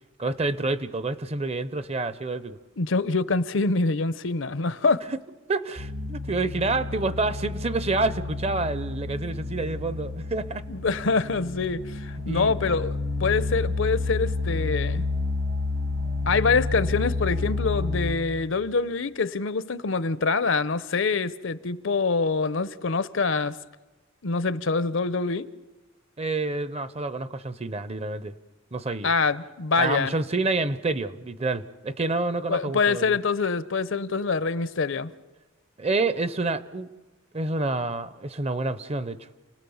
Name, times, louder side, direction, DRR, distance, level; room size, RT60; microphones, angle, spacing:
voice 1, 0.2-2.6 5.5-10.6 12.3-12.5 26.2-28.3 28.7-29.1 29.8-33.2 35.8-36.9 37.3-39.3, right 3 dB, 30° right, 0.8 m, -28 dB
voice 2, 2.8-5.0 10.7-12.9 13.2-15.1 16.3-23.6 24.2-25.5 29.0-30.1 32.5-35.1, left 4 dB, 65° left, 0.7 m, -25 dB
sound 1, 5.8-18.1, left 3 dB, 70° right, 3.2 m, -30 dB
29.0 x 18.5 x 7.2 m
head